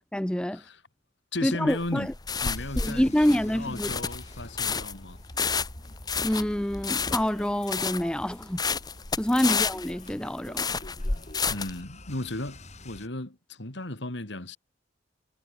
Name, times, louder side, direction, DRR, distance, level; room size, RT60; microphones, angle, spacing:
voice 1, 0.1-0.6 1.4-2.1 2.8-3.9 6.2-8.6 9.2-10.7, equal, 5° left, 0.4 m, -26 dB
voice 2, 1.3-2.1 2.4-5.2 9.4-9.6 11.5-14.6, left 2 dB, 65° left, 2.7 m, -35 dB
sound 1, 1.7-11.8, left 5 dB, 20° left, 0.9 m, -30 dB
sound 2, 2.5-13.1, left 1 dB, 40° left, 5.0 m, -47 dB
head